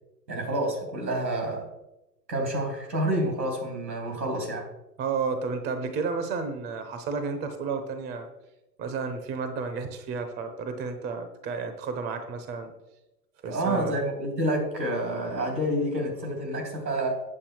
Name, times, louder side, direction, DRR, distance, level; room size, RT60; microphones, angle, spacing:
voice 1, 0.3-1.7 2.3-4.7 13.4-17.2, right 1 dB, 85° right, 2 dB, 3.3 m, -28 dB
voice 2, 5.0-8.3 8.8-12.7 13.4-14.0, right 5 dB, 20° right, 8 dB, 0.9 m, -32 dB
8.6 x 7.3 x 4.5 m, 0.92 s
figure-of-eight pair, 110°, 49 cm